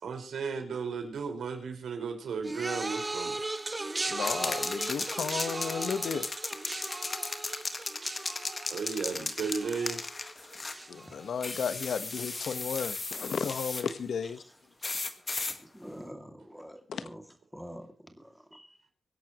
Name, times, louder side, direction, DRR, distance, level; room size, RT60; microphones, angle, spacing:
voice 1, 0.0-3.4 8.0-8.1 8.6-10.1, right 5 dB, 85° right, 5.0 m, -35 dB
sound 1, 2.4-11.8 12.1-12.6 13.5-13.6, right 2 dB, 20° right, 1.4 m, -38 dB
voice 2, 4.1-6.3 10.9-14.4 16.9-17.0, left 6 dB, 80° left, 1.3 m, -34 dB
sound 2, 4.2-10.8 11.4-13.9 14.8-15.6, left 3 dB, 30° left, 1.6 m, -36 dB
voice 3, 15.7-17.2 17.5-17.9 18.2-18.7, equal, ahead, 2.5 m, -45 dB
24.5 x 11.5 x 3.1 m
wide cardioid pair, 145°, 0 cm